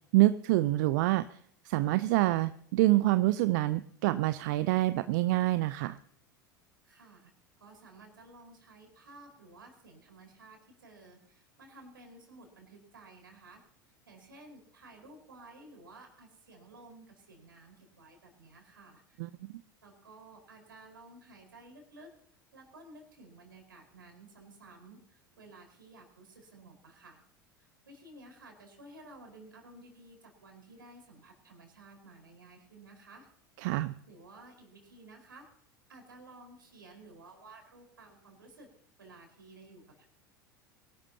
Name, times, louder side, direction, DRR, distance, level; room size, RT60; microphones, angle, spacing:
voice 1, 0.1-1.4 1.6-6.0 19.2-19.6 33.6-33.9, right 17 dB, 60° right, 13 dB, 0.6 m, -26 dB
voice 2, 6.8-7.3 7.6-13.6 14.1-19.2 19.8-22.1 22.5-27.2 27.6-33.3 34.1-35.5 35.9-38.7 39.0-40.1, right 2 dB, 80° right, 3 dB, 4.6 m, -54 dB
23.0 x 12.0 x 2.8 m, 0.64 s
figure-of-eight pair, 80°, 11 cm